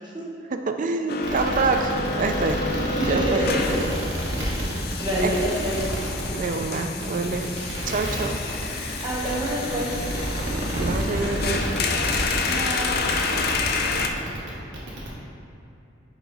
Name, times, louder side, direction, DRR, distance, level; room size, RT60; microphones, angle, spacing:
voice 1, 0.5-2.7 3.1-3.4 5.2-5.3 6.3-7.5 7.9-8.4 10.8-11.6, right 3 dB, 45° right, 6 dB, 0.4 m, -26 dB
sound 1, 1.1-14.1, left 4 dB, 60° left, 0.4 m, -29 dB
sound 2, 1.2-15.1, equal, 80° right, 1.2 m, -30 dB
voice 2, 2.9-3.8 5.0-5.9 9.0-10.0 12.4-13.4, right 1 dB, 25° right, -6 dB, 0.9 m, -27 dB
5.9 x 4.7 x 4.0 m, 2.8 s
head